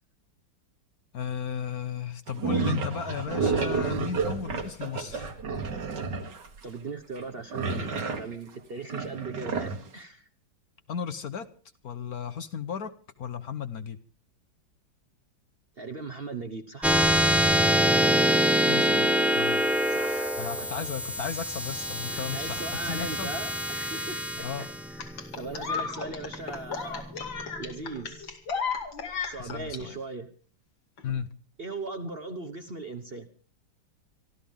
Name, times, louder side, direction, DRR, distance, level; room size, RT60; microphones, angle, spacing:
voice 1, 1.1-5.3 10.9-11.5 11.8-12.9 13.2-14.0 18.7-19.1 19.4-19.6 20.4-23.3 24.4-24.7 29.4-29.9 31.0-31.3, left 7 dB, 55° left, 11 dB, 1.2 m, -34 dB
sound 1, 2.3-6.5 7.2-8.3 8.9-9.9, right 4 dB, 60° right, 2.3 m, -30 dB
voice 2, 6.6-10.3 15.8-17.0 19.9-20.7 22.1-24.3 24.6-25.0 25.4-27.0 27.6-28.3 29.2-30.3 31.6-33.3, right 3 dB, 40° right, 7 dB, 1.0 m, -38 dB
sound 2, 16.8-27.7, equal, ahead, 0.5 m, -25 dB
sound 3, 25.0-29.8 31.0-31.1, left 5 dB, 75° left, 3.1 m, -34 dB
25.5 x 13.5 x 3.6 m, 0.40 s
omnidirectional pair, 2.1 m